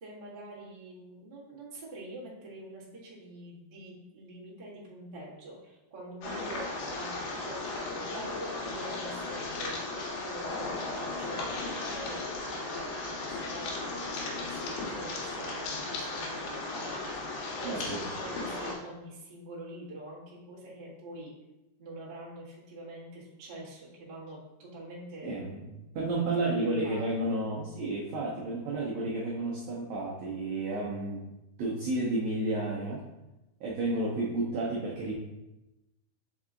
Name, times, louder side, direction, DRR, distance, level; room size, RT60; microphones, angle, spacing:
voice 1, 0.0-6.6 6.9-9.8 10.2-11.4 11.8-17.1 17.6-21.3 21.8-25.3 26.1-27.2, right 1 dB, 45° right, -7 dB, 0.6 m, -45 dB
sound 1, 6.2-18.7, left 2 dB, 80° left, 3.0 m, -36 dB
voice 2, 17.6-18.0 25.2-31.2 31.6-33.0 33.6-35.1, right 2 dB, 80° right, -4 dB, 1.6 m, -31 dB
5.4 x 4.7 x 3.7 m, 0.98 s
omnidirectional pair, 4.4 m